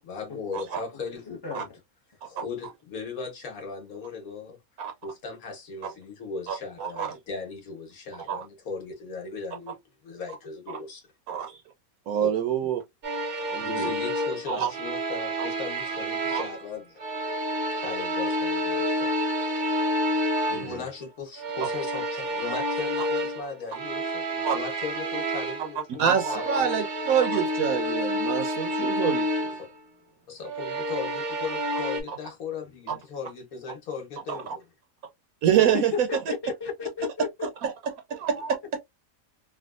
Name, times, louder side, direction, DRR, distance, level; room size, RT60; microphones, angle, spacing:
voice 1, 0.0-1.6 2.2-4.6 5.0-11.1 12.2-12.3 12.6-12.7 13.3-17.0 17.8-19.1 20.5-26.8 29.6-29.7 30.3-34.7, left 5 dB, 70° left, 1.6 m, -38 dB
voice 2, 1.3-1.7 35.5-35.8 36.1-37.3, left 6 dB, 20° left, 0.8 m, -33 dB
voice 3, 6.5-7.1 8.3-8.4 11.3-11.6 12.1-12.8 13.5-13.9 14.5-14.7 16.3-16.4 20.5-20.8 24.4-24.6 26.0-29.5 34.3-34.4 35.4-36.1 37.6-37.7 38.1-38.6, right 8 dB, 75° right, 1.0 m, -26 dB
sound 1, 13.0-16.7 17.0-20.9 21.4-25.8 26.1-29.6 30.4-32.0, equal, 50° right, 0.8 m, -29 dB
3.4 x 2.3 x 2.4 m
omnidirectional pair, 1.6 m